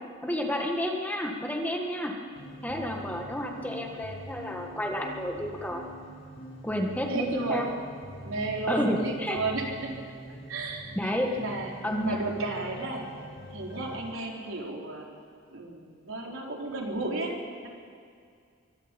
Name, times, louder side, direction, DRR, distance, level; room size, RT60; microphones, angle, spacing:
voice 1, 0.2-2.1 2.6-5.8 6.6-7.7 8.7-9.4 11.0-11.3 11.8-12.1, equal, 10° left, 1 dB, 1.9 m, -30 dB
sound 1, 2.3-14.1, equal, 65° left, 5.8 m, -45 dB
voice 2, 7.1-7.7 8.2-9.9 10.3-11.7 12.0-13.1 13.5-15.0 15.5-17.4, right 3 dB, 85° right, -1 dB, 4.1 m, -33 dB
26.0 x 23.5 x 5.4 m, 2.3 s
head